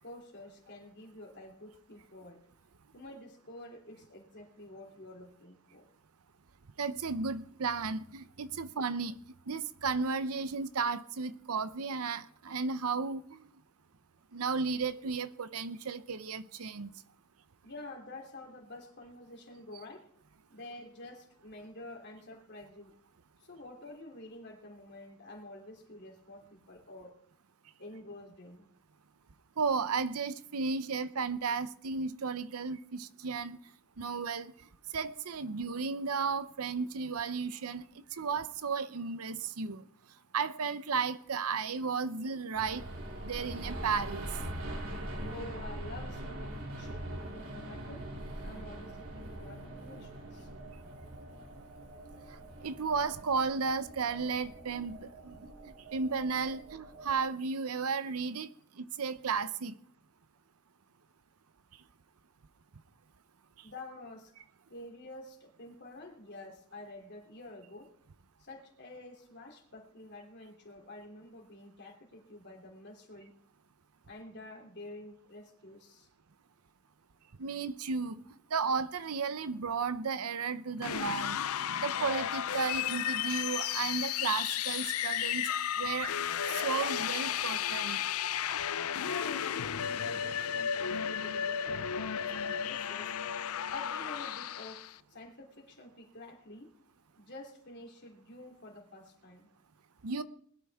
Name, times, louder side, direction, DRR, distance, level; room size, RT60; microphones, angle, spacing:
voice 1, 0.0-2.4 2.9-5.9 17.6-20.1 20.5-22.9 23.4-27.2 27.8-28.7 45.2-48.1 48.4-50.5 63.6-64.3 64.7-67.9 68.4-73.3 74.1-76.1 89.0-93.2 93.7-96.7 97.2-99.5, left 2 dB, 50° left, 3.2 m, -48 dB
voice 2, 6.8-9.2 9.5-13.4 14.3-16.9 29.6-33.6 34.0-34.5 34.9-39.8 40.3-42.8 43.2-44.3 52.6-55.3 55.9-58.5 58.8-59.7 77.4-78.2 78.5-81.4 81.8-85.5 85.8-86.1 86.5-88.0 100.0-100.2, right 5 dB, 90° right, 0.7 m, -34 dB
sound 1, 42.5-57.2, right 1 dB, 70° right, 3.1 m, -43 dB
sound 2, 80.8-94.9, left 9 dB, 80° left, 0.5 m, -33 dB
20.5 x 12.0 x 3.6 m
head